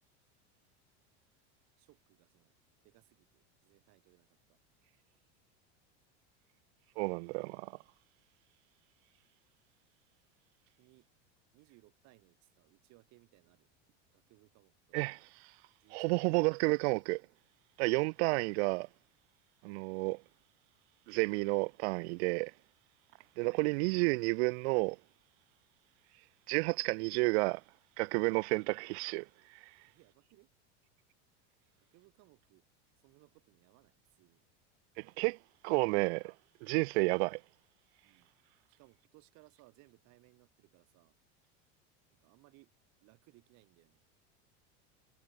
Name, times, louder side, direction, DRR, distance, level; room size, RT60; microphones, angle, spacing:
voice 1, 1.8-2.5 2.8-4.6 10.8-11.1 11.5-15.0 15.8-16.6 18.0-18.4 23.2-23.6 28.4-28.6 29.8-30.5 31.8-32.6 33.0-34.4 38.0-38.3 38.7-41.1 42.1-42.7 43.0-44.0, right 23 dB, 55° right, 2.1 m, -65 dB
voice 2, 7.0-7.7 14.9-15.3 15.9-17.2 17.8-18.9 19.6-20.2 21.1-22.5 23.4-25.0 26.5-27.6 28.0-29.3 35.0-35.4 35.6-36.2 36.6-37.4, right 29 dB, 70° right, 0.5 m, -31 dB
supercardioid pair, 140°, 34 cm